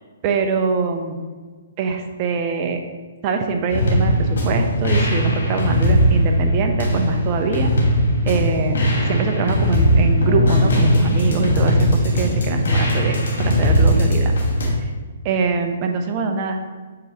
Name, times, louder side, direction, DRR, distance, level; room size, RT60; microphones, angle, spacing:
voice 1, 0.2-1.2 1.8-2.8 3.2-7.7 8.3-14.3 14.8-14.9 15.2-16.6, right 4 dB, 35° right, 5 dB, 0.7 m, -23 dB
sound 1, 3.7-14.7, equal, 70° left, 1.5 m, -18 dB
7.4 x 4.7 x 2.9 m, 1.4 s
figure-of-eight pair, 130°, 0 cm